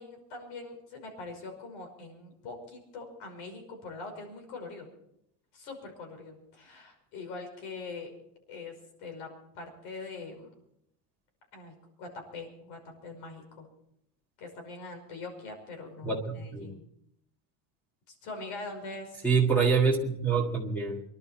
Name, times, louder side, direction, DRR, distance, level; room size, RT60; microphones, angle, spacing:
voice 1, 0.0-4.9 5.5-8.1 8.5-8.7 9.0-10.5 11.5-13.7 14.4-16.9 18.1-19.3, left 3 dB, 65° left, 4 dB, 5.6 m, -43 dB
voice 2, 16.0-16.7 19.2-21.0, right 5 dB, 5° left, 0 dB, 1.6 m, -26 dB
24.5 x 11.5 x 4.4 m, 0.75 s
cardioid pair, 160°, 46 cm